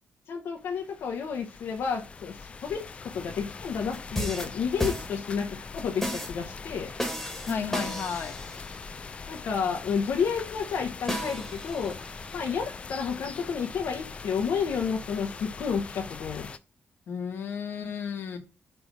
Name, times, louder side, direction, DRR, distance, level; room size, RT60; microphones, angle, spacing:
voice 1, 0.3-6.9 9.3-12.0 12.3-16.5, left 6 dB, 80° left, 1.0 m, -31 dB
sound 1, 0.6-16.6, left 4 dB, 30° left, 0.4 m, -42 dB
sound 2, 3.9-5.5 6.0-6.4 7.0-8.9 11.1-12.7, equal, 5° left, 1.6 m, -34 dB
voice 2, 7.5-8.4 17.1-18.4, left 6 dB, 60° left, 1.3 m, -33 dB
6.3 x 3.4 x 5.9 m
wide cardioid pair, 170°, 4 cm